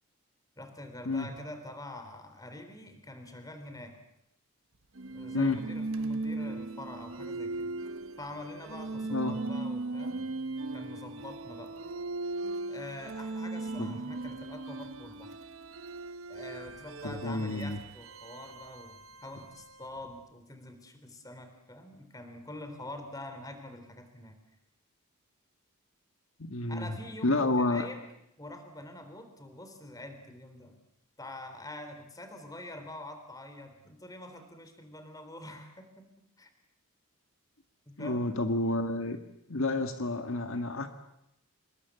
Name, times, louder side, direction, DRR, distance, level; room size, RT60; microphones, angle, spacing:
voice 1, 0.6-3.9 5.1-7.7 8.2-10.3 10.6-11.8 12.7-15.4 16.3-24.4 26.7-28.1 28.4-30.8 31.2-36.1 36.4-36.5 37.9-38.3, left 1 dB, 15° left, 7 dB, 3.5 m, -45 dB
sound 1, 4.9-20.0, right 2 dB, 65° right, 1.0 m, -38 dB
voice 2, 17.0-17.8 26.4-26.9 27.2-27.9 38.0-39.2 39.5-40.9, left 2 dB, 65° left, 7 dB, 1.7 m, -29 dB
26.5 x 22.0 x 8.3 m, 0.82 s
head